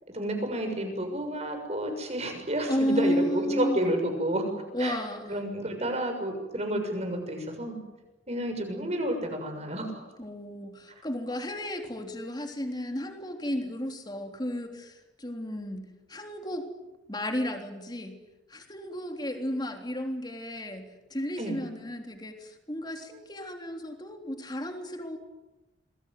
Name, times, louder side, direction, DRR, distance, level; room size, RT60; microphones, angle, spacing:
voice 1, 0.1-4.5 4.8-5.0 5.3-7.8 8.3-10.0 21.4-21.6, right 1 dB, 35° right, 5 dB, 6.9 m, -30 dB
voice 2, 2.7-3.9 4.7-5.5 10.2-16.7 17.1-18.2 18.5-25.2, equal, 20° left, 4 dB, 3.5 m, -33 dB
28.0 x 22.0 x 9.4 m, 1.0 s
head